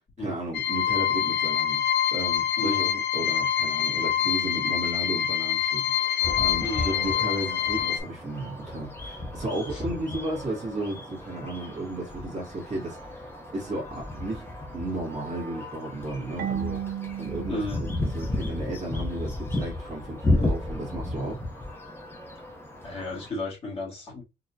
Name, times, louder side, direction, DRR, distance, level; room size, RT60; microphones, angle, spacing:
voice 1, 0.2-1.8 2.1-13.3 13.5-16.8 17.2-21.4, right 1 dB, 40° right, 1.6 m, -34 dB
sound 1, 0.5-8.0, left 9 dB, 85° left, 0.6 m, -26 dB
voice 2, 2.6-2.9 6.6-7.0 9.7-9.8 17.5-17.8 22.8-24.2, left 2 dB, 30° left, 2.0 m, -33 dB
sound 2, 6.2-23.3, left 2 dB, 15° left, 0.7 m, -33 dB
Marimba xylophone / Wood, 16.4-19.1, right 10 dB, 60° right, 0.4 m, -35 dB
4.0 x 2.8 x 2.7 m
wide cardioid pair, 175°, 17 cm